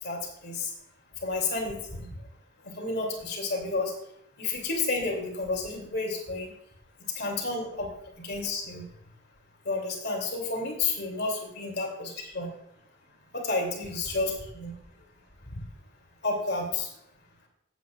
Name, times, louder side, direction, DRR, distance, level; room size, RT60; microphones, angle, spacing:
voice 1, 0.0-0.7 1.2-2.1 2.6-3.9 4.4-6.5 7.2-7.9 8.2-8.8 9.6-12.5 13.3-14.7 15.5-15.6 16.2-16.9, left 3 dB, 55° left, 1 dB, 2.7 m, -31 dB
15.5 x 8.4 x 2.4 m, 0.74 s
head